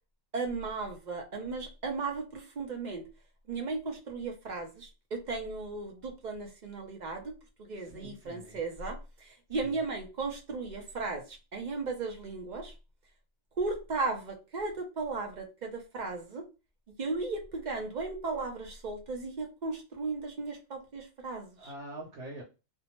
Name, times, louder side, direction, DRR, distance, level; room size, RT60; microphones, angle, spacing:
voice 1, 0.3-3.0 3.5-7.3 7.6-12.7 13.6-16.4 17.0-21.7, right 3 dB, 50° right, 2 dB, 0.6 m, -36 dB
voice 2, 7.8-8.6 9.6-9.8 21.6-22.4, right 1 dB, 75° right, -2 dB, 1.0 m, -45 dB
2.7 x 2.1 x 2.9 m, 0.29 s
omnidirectional pair, 1.2 m